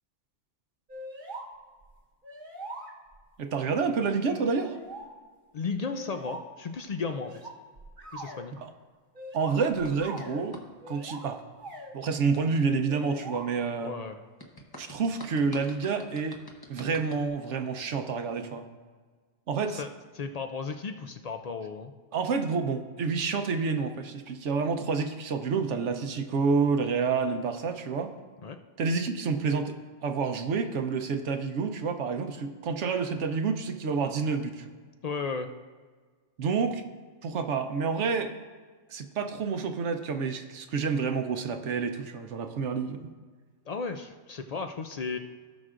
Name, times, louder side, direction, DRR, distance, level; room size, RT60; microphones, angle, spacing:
sound 1, 0.9-1.5 1.8-1.9 2.2-3.2 4.1-5.1 5.9-6.5 7.2-8.4 9.2-10.5 10.8-11.2 11.6-11.9 12.9-13.4, right 1 dB, 45° right, 1.1 m, -42 dB
voice 1, 3.4-4.8 8.6-8.7 9.3-11.4 11.9-13.9 14.8-16.4 16.7-18.6 19.5-19.8 22.1-28.1 28.8-34.7 36.4-36.8 37.2-38.3 38.9-43.1, right 5 dB, 75° right, 7 dB, 1.0 m, -29 dB
voice 2, 5.5-7.3 8.1-8.6 13.8-14.2 19.8-19.9 20.1-21.9 28.4-28.6 35.0-35.5 43.7-45.2, left 4 dB, 60° left, 7 dB, 0.4 m, -34 dB
sound 2, 9.8-10.7 14.4-17.3, left 1 dB, 20° left, 0.9 m, -47 dB
17.0 x 6.3 x 2.5 m, 1.5 s
omnidirectional pair, 1.2 m